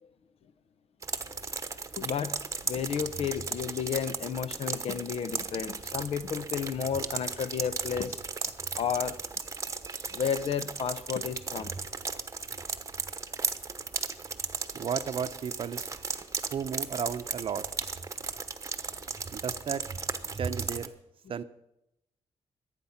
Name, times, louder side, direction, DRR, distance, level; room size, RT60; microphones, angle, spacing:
sound 1, 1.0-20.9, right 4 dB, 25° right, 1.0 m, -36 dB
voice 1, 2.0-2.4 2.6-8.2 8.8-9.2 10.1-11.7, left 7 dB, 65° left, 14 dB, 0.8 m, -32 dB
voice 2, 14.7-15.8 16.5-17.6 19.3-19.8 20.4-20.9 21.3-21.4, right 7 dB, 55° right, 11 dB, 0.7 m, -33 dB
22.5 x 9.1 x 5.8 m, 0.84 s
wide cardioid pair, 130°, 11 cm